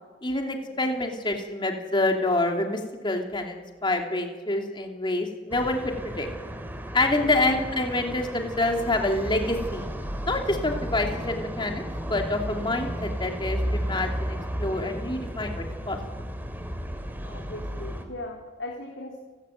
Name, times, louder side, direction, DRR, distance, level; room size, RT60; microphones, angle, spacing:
voice 1, 0.2-6.3 6.9-9.9 10.3-11.8 12.1-16.0, left 2 dB, 25° left, 3 dB, 3.0 m, -27 dB
sound 1, 5.5-18.0, equal, 10° right, 2.9 m, -33 dB
voice 2, 7.1-7.5 17.2-19.2, left 1 dB, 80° left, -1 dB, 3.9 m, -39 dB
30.0 x 13.0 x 9.3 m, 1.5 s
head